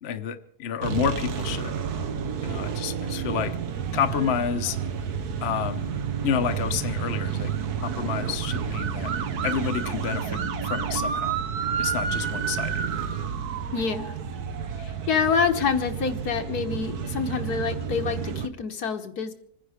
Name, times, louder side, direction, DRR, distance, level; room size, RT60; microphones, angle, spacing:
voice 1, 0.0-1.8 2.4-3.5 3.9-4.8 5.4-5.9 6.2-7.5 7.8-9.1 9.4-11.4 11.8-12.9, left 8 dB, 45° left, 7 dB, 1.0 m, -29 dB
sound 1, 0.8-18.5, right 7 dB, 70° right, 1.6 m, -30 dB
voice 2, 13.7-14.1 14.8-19.3, left 6 dB, 70° left, 6 dB, 1.7 m, -27 dB
26.0 x 10.0 x 5.0 m, 0.67 s
omnidirectional pair, 1.7 m